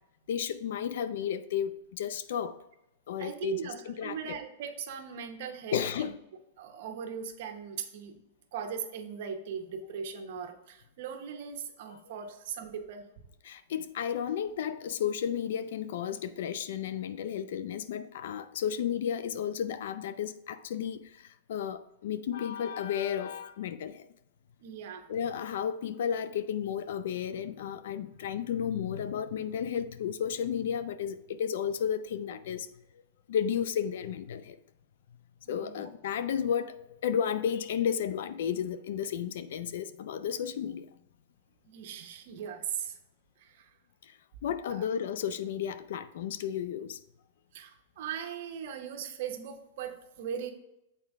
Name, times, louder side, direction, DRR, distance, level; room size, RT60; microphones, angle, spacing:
voice 1, 0.3-2.6 3.1-3.6 3.9-4.4 5.7-6.2 11.9-12.0 13.4-24.1 25.1-32.7 33.3-34.6 35.5-40.9 44.4-47.0, left 8 dB, 70° left, 0.5 m, -33 dB
voice 2, 3.2-6.1 6.6-8.2 8.5-13.0 24.6-25.1 35.5-35.9 41.7-43.0 43.4-43.7 44.7-44.8 47.5-50.5, right 7 dB, 60° right, 1.0 m, -39 dB
6.8 x 4.3 x 3.6 m
hypercardioid pair, 130°, 0 cm